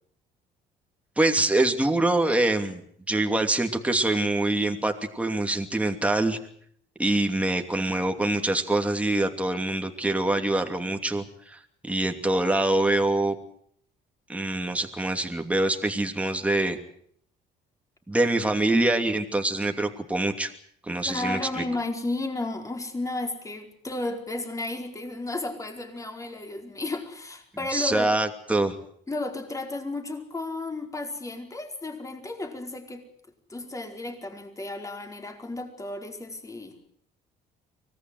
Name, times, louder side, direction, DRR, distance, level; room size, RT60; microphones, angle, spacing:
voice 1, 1.2-2.8 3.1-6.4 7.0-13.3 14.3-16.8 18.1-20.5 20.8-21.6 27.7-28.8, right 2 dB, 10° right, 5 dB, 2.8 m, -25 dB
voice 2, 21.0-28.1 29.1-33.0 33.5-36.8, left 2 dB, 20° left, 4 dB, 4.7 m, -33 dB
24.5 x 18.5 x 7.9 m, 0.63 s
cardioid pair, 110°, 17 cm